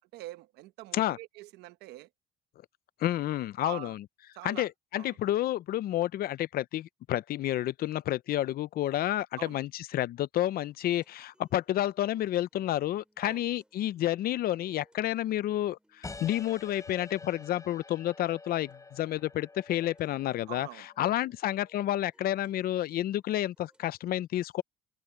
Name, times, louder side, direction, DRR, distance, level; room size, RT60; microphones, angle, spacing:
voice 1, 0.1-2.1 3.6-3.9 4.3-4.7 5.0-5.2 9.4-9.6 13.2-13.4 20.5-21.1, right 16 dB, 90° right, 1.0 m, -44 dB
voice 2, 3.0-4.0 4.4-20.7 21.0-24.6, left 13 dB, 60° left, 0.6 m, -30 dB
sound 1, 10.7-24.1, right 1 dB, 5° right, 7.1 m, -69 dB
sound 2, 16.0-21.2, left 3 dB, 20° left, 4.4 m, -48 dB
cardioid pair, 110°, 17 cm